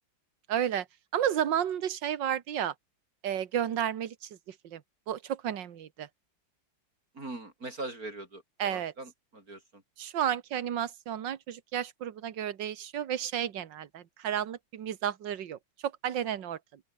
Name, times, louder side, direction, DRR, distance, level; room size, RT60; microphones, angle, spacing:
voice 1, 0.5-0.9 1.1-2.7 3.2-4.3 4.6-4.8 5.1-6.1 8.6-8.9 10.0-16.6, right 10 dB, 70° right, 2.0 m, -32 dB
voice 2, 7.1-9.8, right 2 dB, 45° right, 6.1 m, -41 dB
open air
omnidirectional pair, 2.1 m